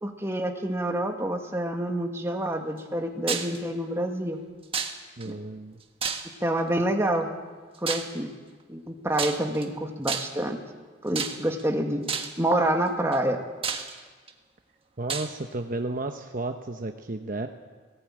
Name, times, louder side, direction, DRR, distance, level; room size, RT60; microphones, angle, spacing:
voice 1, 0.0-4.4 5.2-5.3 6.4-7.3 7.8-8.3 8.7-10.6 11.0-12.0 12.4-13.4, right 1 dB, 15° right, 3 dB, 1.8 m, -27 dB
sound 1, 3.3-3.6 4.7-5.3 6.0-6.5 7.9-8.2 9.1-9.7 10.1-10.5 11.2-11.6 12.1-12.4 13.1-13.2 13.6-14.3 15.1-15.3, right 6 dB, 30° right, 1.4 m, -30 dB
voice 2, 5.2-5.8 15.0-17.5, right 2 dB, 45° right, 5 dB, 0.9 m, -33 dB
18.0 x 16.5 x 8.8 m, 1.4 s
head